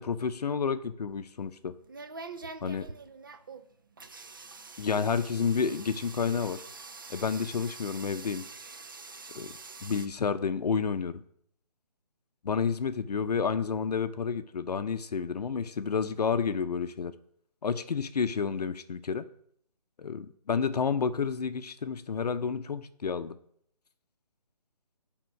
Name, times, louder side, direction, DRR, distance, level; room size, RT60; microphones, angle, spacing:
voice 1, 0.0-1.7 2.6-2.9 4.8-6.6 7.1-8.4 9.3-9.5 9.8-11.2 12.4-17.1 17.6-19.2 20.0-23.4, left 6 dB, 70° left, 11 dB, 0.6 m, -30 dB
sound 1, 1.1-10.1, right 4 dB, 30° right, 0.4 m, -45 dB
9.3 x 3.7 x 5.1 m, 0.66 s
hypercardioid pair, 165°, 21 cm